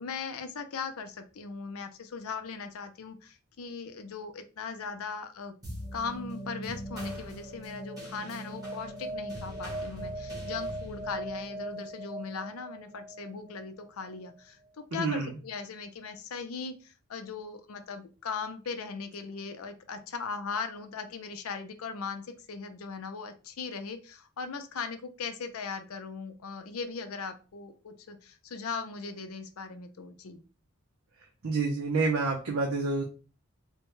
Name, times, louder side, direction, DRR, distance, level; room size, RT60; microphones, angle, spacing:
voice 1, 0.0-5.5 5.9-30.4, left 5 dB, 85° left, 8 dB, 0.5 m, -39 dB
sound 1, 5.6-14.3, right 1 dB, 15° right, 1.3 m, -39 dB
voice 2, 14.9-15.3 31.4-33.0, right 3 dB, 85° right, -1 dB, 0.7 m, -28 dB
3.4 x 2.2 x 3.0 m, 0.34 s
head